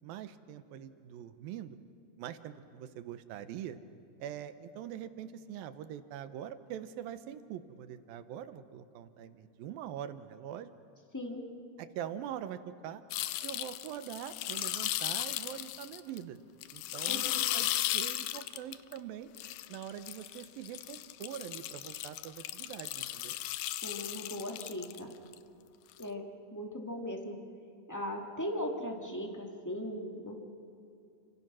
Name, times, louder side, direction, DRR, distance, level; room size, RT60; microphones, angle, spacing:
voice 1, 0.0-1.8 2.2-3.8 4.2-10.7 11.8-13.0 13.4-16.4 16.7-17.3 17.5-19.3 19.7-23.4, right 10 dB, 80° right, 11 dB, 2.7 m, -43 dB
sound 1, 13.1-16.2 16.6-19.0 19.4-25.3 26.0-26.1, left 14 dB, 75° left, 2.2 m, -36 dB
voice 2, 17.1-17.4 23.8-25.1 26.0-27.4 27.9-30.4, equal, 5° left, 1 dB, 1.5 m, -38 dB
30.0 x 26.0 x 6.2 m, 2.6 s
omnidirectional pair, 4.2 m